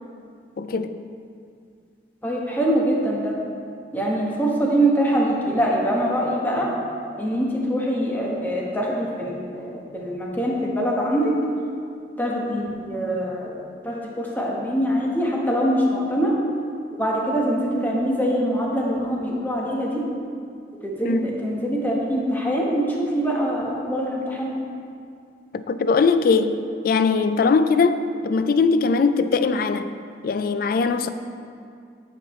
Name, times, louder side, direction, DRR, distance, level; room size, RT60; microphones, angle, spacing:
voice 1, 0.6-1.0 21.0-21.3 25.5-29.9 30.2-31.1, left 4 dB, 55° left, 0.3 m, -21 dB
voice 2, 2.2-3.3 3.9-6.7 7.2-11.3 12.2-13.6 13.8-16.3 17.0-20.0 20.8-24.5, equal, 10° left, 1.1 m, -23 dB
8.8 x 7.3 x 3.1 m
head